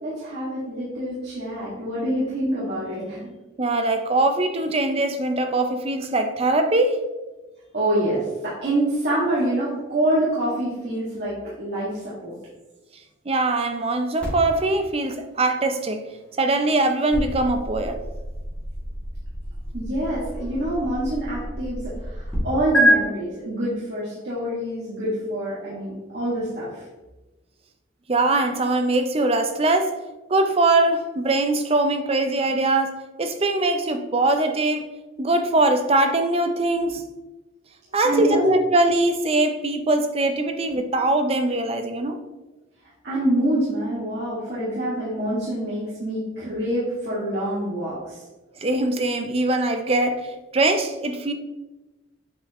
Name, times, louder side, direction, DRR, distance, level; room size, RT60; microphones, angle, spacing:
voice 1, 0.0-3.3 7.7-12.3 19.7-26.8 38.0-38.4 43.0-48.2, right 1 dB, 55° right, 1.8 m, -26 dB
voice 2, 3.6-7.0 13.3-16.1 16.4-18.0 28.1-30.0 30.3-34.9 35.2-37.0 37.9-42.2 48.6-51.3, right 2 dB, 30° right, 0.5 m, -22 dB
sound 1, 14.2-22.4 22.7-22.9, equal, 5° left, 2.2 m, -29 dB
7.8 x 5.1 x 3.0 m
head